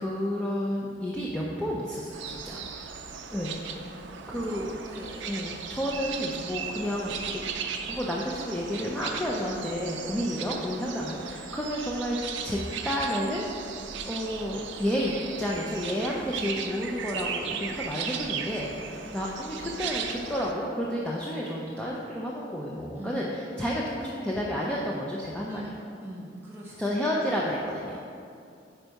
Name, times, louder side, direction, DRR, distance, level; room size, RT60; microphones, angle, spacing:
voice 1, 0.0-2.6 3.0-3.6 4.3-4.7 5.2-7.4 7.9-12.6 12.8-13.7 14.0-25.6 26.8-28.0, equal, 5° left, -5 dB, 0.4 m, -31 dB
sound 1, 2.1-20.5, right 6 dB, 65° right, 0.4 m, -37 dB
voice 2, 4.3-5.3 10.2-10.3 18.9-19.1 22.9-23.2 25.5-26.8 27.1-27.2, equal, 10° right, -6 dB, 1.1 m, -43 dB
4.6 x 4.5 x 5.2 m, 2.5 s
head